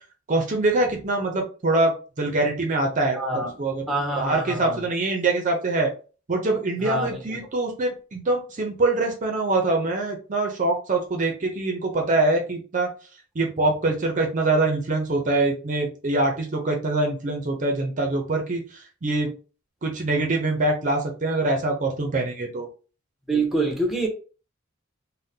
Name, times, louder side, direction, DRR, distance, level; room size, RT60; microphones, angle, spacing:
voice 1, 0.3-3.9 4.2-5.9 6.3-12.9 13.4-19.3 19.8-22.7, right 2 dB, 40° right, 0.6 m, -24 dB
voice 2, 3.2-3.5 3.9-4.8 6.8-7.2 23.3-24.1, right 2 dB, ahead, 0.8 m, -25 dB
3.6 x 2.1 x 2.7 m
head